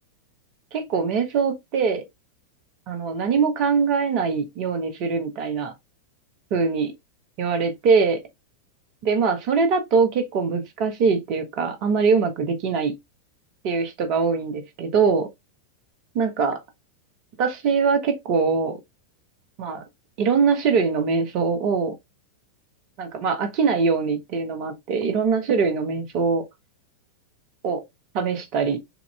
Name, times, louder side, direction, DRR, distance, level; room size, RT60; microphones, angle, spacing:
voice 1, 0.7-2.0 2.9-5.7 6.5-6.9 7.4-8.2 9.0-12.9 13.6-15.3 16.1-16.6 17.4-18.8 19.6-19.8 20.2-21.9 23.0-26.4 27.6-27.8 28.1-28.8, right 5 dB, 40° right, 1.1 m, -22 dB
7.0 x 2.9 x 2.2 m
figure-of-eight pair, 90°, 0 cm